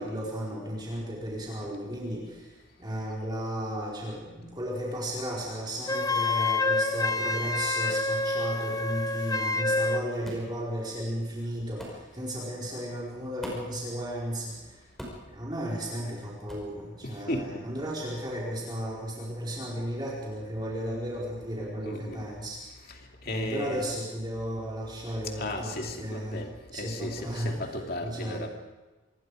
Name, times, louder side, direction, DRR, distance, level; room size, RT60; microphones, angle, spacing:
voice 1, 0.0-14.8 15.3-22.9 23.2-26.5 26.7-27.6 28.0-28.5, equal, 20° right, -5 dB, 4.8 m, -34 dB
Wind instrument woodwind instrument, 5.9-10.1, left 2 dB, 20° left, 0.8 m, -27 dB
sound 1, 10.2-10.5 11.8-12.0 13.4-13.8 15.0-15.3 16.5-16.7, equal, ahead, 5.3 m, -40 dB
voice 2, 17.0-17.6 21.8-22.2 22.9-23.9 25.4-28.5, left 1 dB, 50° left, 2 dB, 2.6 m, -36 dB
26.0 x 22.0 x 5.0 m, 1.2 s
head